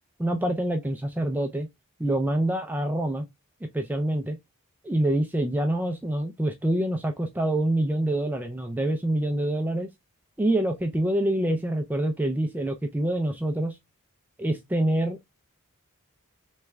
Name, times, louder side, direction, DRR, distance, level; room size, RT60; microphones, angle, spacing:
voice 1, 0.2-1.7 2.0-3.2 3.7-4.4 4.8-9.9 10.4-13.7 14.4-15.2, right 1 dB, 10° right, 0.4 m, -26 dB
3.4 x 3.2 x 3.3 m
head